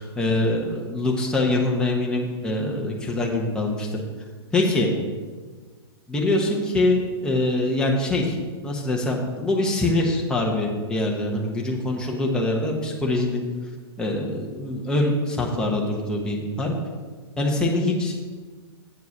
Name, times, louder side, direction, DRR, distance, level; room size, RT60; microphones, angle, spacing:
voice 1, 0.0-3.9 4.5-4.9 6.1-8.3 8.6-13.4 14.0-16.7 17.4-18.2, left 2 dB, 5° left, -2 dB, 1.2 m, -24 dB
8.1 x 4.6 x 7.2 m, 1.4 s
hypercardioid pair, 125°, 14 cm